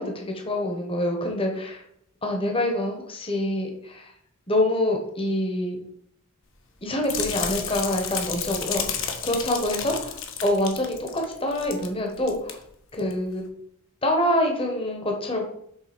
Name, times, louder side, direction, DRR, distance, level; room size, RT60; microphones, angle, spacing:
voice 1, 0.0-1.8 2.2-4.1 4.5-5.8 6.8-12.6 12.9-13.4 14.0-15.4, left 1 dB, 25° left, 2 dB, 1.1 m, -26 dB
sound 1, 7.0-11.9 12.2-12.5 13.0-13.1, left 7 dB, 60° left, 1.0 m, -31 dB
6.6 x 4.0 x 6.0 m, 0.72 s
head